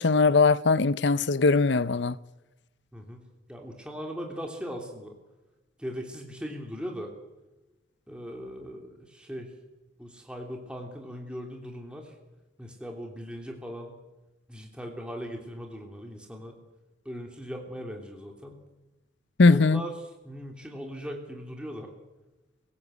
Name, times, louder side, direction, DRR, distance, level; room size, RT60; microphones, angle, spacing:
voice 1, 0.0-2.1 19.4-19.8, left 3 dB, 65° left, 0.7 m, -20 dB
voice 2, 3.5-5.2 5.8-7.1 8.1-9.5 10.0-12.1 12.6-13.9 14.5-16.6 17.0-18.6 19.5-19.9 20.2-21.9, equal, 5° right, 3.1 m, -39 dB
24.5 x 16.5 x 8.0 m
head